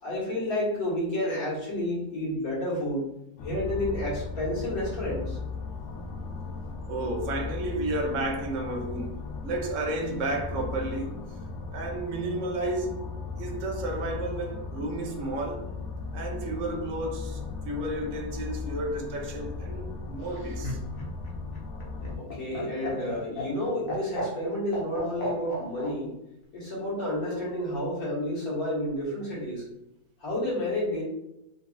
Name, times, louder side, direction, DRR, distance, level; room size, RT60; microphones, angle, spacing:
voice 1, 0.0-3.0 3.4-5.4 22.2-26.1 26.5-29.6 30.2-31.0, left 1 dB, 60° left, 1.7 m, -30 dB
sound 1, 3.4-22.2, left 4 dB, 85° left, 1.2 m, -37 dB
voice 2, 6.9-11.2 11.7-13.0 13.4-15.6 16.1-20.8, right 1 dB, 60° right, 0.9 m, -32 dB
Laughter, 20.2-25.9 27.2-27.8, left 1 dB, 45° left, 0.8 m, -35 dB
3.9 x 2.3 x 2.3 m
omnidirectional pair, 1.7 m